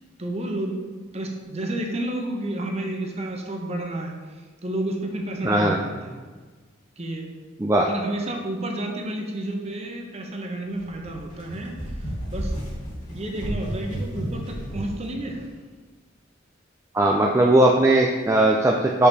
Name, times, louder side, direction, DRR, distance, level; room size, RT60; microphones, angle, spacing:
voice 1, 0.2-0.8 1.1-6.2 7.0-7.3 7.8-12.5 13.1-15.5, right 1 dB, 30° right, 2 dB, 0.9 m, -31 dB
voice 2, 5.4-5.8 7.6-7.9 16.9-19.1, right 1 dB, 15° right, -1 dB, 0.4 m, -18 dB
sound 1, 10.7-15.1, equal, 40° left, 1.9 m, -32 dB
6.4 x 5.6 x 4.1 m, 1.4 s
head